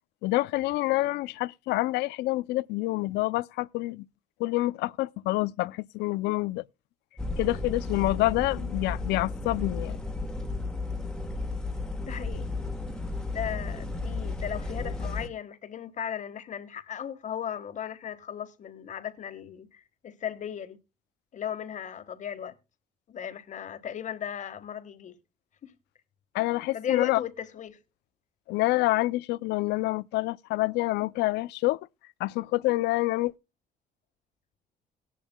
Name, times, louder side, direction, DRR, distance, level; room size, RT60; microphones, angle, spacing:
voice 1, 0.2-4.1 4.4-6.6 7.4-10.0 26.3-27.2 28.5-31.8 32.2-33.3, left 19 dB, 85° left, 0.5 m, -27 dB
sound 1, 7.2-15.3, left 3 dB, 5° left, 1.4 m, -33 dB
voice 2, 12.0-12.5 13.3-20.8 21.3-22.5 23.1-25.2 25.6-25.7 26.7-27.8, left 9 dB, 45° left, 1.5 m, -36 dB
18.0 x 11.0 x 2.2 m
cardioid pair, 110°, 17 cm